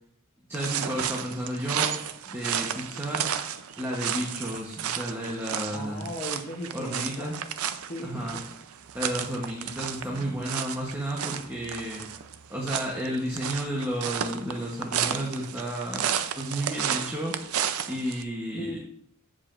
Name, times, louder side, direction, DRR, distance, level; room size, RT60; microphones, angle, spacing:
voice 1, 0.5-1.9 2.3-3.3 3.8-6.1 6.7-7.3 8.0-8.4 8.9-12.0 12.5-17.3 17.9-18.8, right 1 dB, 10° right, -3 dB, 0.9 m, -32 dB
sound 1, 0.5-18.2, right 9 dB, 70° right, 0.5 m, -33 dB
voice 2, 5.7-7.3 7.8-8.4 10.0-10.4 18.5-18.8, left 1 dB, 30° left, -1 dB, 0.8 m, -37 dB
14.5 x 4.9 x 2.5 m, 0.69 s
head